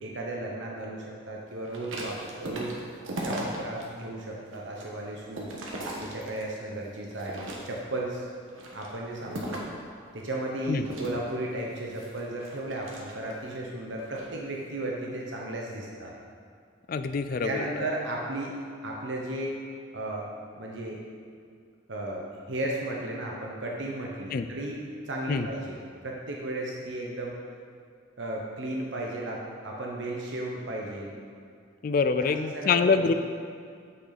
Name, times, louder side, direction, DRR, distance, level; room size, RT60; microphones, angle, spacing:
voice 1, 0.0-2.8 3.2-5.6 6.0-8.3 8.7-9.6 10.1-16.1 17.4-18.6 18.8-19.5 19.9-20.3 20.6-21.0 21.9-27.4 28.2-31.1 32.2-33.1, right 1 dB, 65° right, -2 dB, 0.9 m, -35 dB
sound 1, 1.6-3.9 4.3-6.6 7.1-8.0 8.5-9.8 10.8-13.5 14.0-14.3, right 1 dB, 85° right, 1.3 m, -38 dB
voice 2, 16.9-17.7 24.3-24.4 25.3-25.5 31.8-33.1, left 4 dB, 45° left, 10 dB, 0.3 m, -25 dB
9.1 x 6.6 x 4.0 m, 2.2 s
head